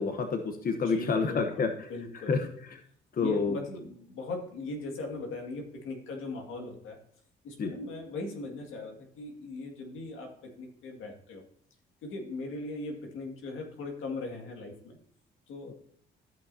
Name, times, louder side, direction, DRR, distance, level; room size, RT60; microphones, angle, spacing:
voice 1, 0.0-1.9 2.1-2.8 3.1-3.6 7.6-7.7 15.7-15.8, left 4 dB, 45° left, 6 dB, 1.0 m, -29 dB
voice 2, 0.7-2.4 3.2-7.0 7.4-11.4 12.0-15.0 15.5-15.7, left 2 dB, 90° left, 2 dB, 2.1 m, -39 dB
13.5 x 5.7 x 2.7 m, 0.65 s
cardioid pair, 90°, 20 cm